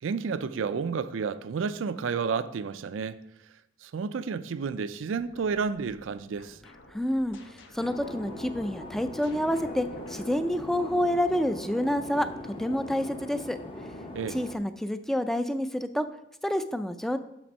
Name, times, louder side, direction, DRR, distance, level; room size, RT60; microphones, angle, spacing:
voice 1, 0.0-3.2 3.8-6.6 14.1-14.4, right 5 dB, 85° right, 0.4 m, -31 dB
sound 1, 5.2-11.4, left 2 dB, 90° left, 1.0 m, -55 dB
voice 2, 6.9-13.6 14.3-16.1 16.4-17.2, left 1 dB, ahead, 0.3 m, -28 dB
sound 2, 7.8-14.6, left 1 dB, 30° left, 0.7 m, -41 dB
sound 3, 8.0-12.4, right 3 dB, 45° left, 1.0 m, -50 dB
6.9 x 6.0 x 5.3 m
head